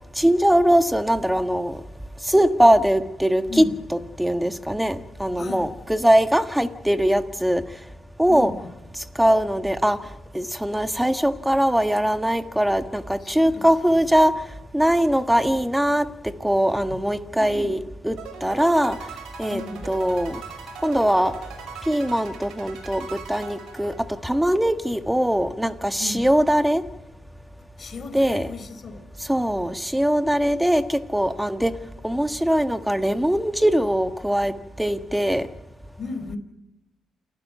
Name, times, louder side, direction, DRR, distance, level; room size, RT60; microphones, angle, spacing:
voice 1, 0.2-1.8 2.3-3.6 4.2-7.6 8.2-8.5 9.2-10.0 10.3-14.3 14.7-16.1 16.4-17.8 18.0-19.0 19.4-19.6 19.9-20.4 20.8-21.3 21.9-23.9 24.2-26.8 28.1-28.5 29.3-31.7 32.0-34.5 34.8-35.5, equal, 5° right, 1.6 m, -21 dB
voice 2, 3.5-3.8 5.4-5.8 8.3-8.7 13.2-13.7 16.9-17.0 17.3-17.8 19.5-19.9 26.0-26.3 27.8-29.1 36.0-36.4, left 3 dB, 45° left, 4.2 m, -35 dB
sound 1, 18.2-24.5, right 6 dB, 90° right, 5.2 m, -40 dB
28.5 x 12.5 x 9.4 m
cardioid pair, 90°, 0 cm